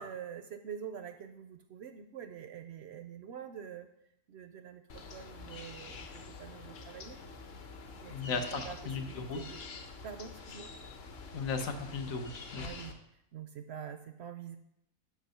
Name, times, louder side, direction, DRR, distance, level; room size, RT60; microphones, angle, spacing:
voice 1, 0.0-3.9 4.3-7.2 8.0-9.6 10.0-10.7 12.5-12.9 13.3-14.6, right 8 dB, 65° right, 8 dB, 0.6 m, -46 dB
sound 1, 4.9-12.9, left 4 dB, 50° left, 0.9 m, -47 dB
voice 2, 8.1-9.4 11.3-12.7, left 4 dB, 70° left, 6 dB, 1.3 m, -36 dB
7.3 x 6.0 x 5.5 m, 0.79 s
omnidirectional pair, 1.5 m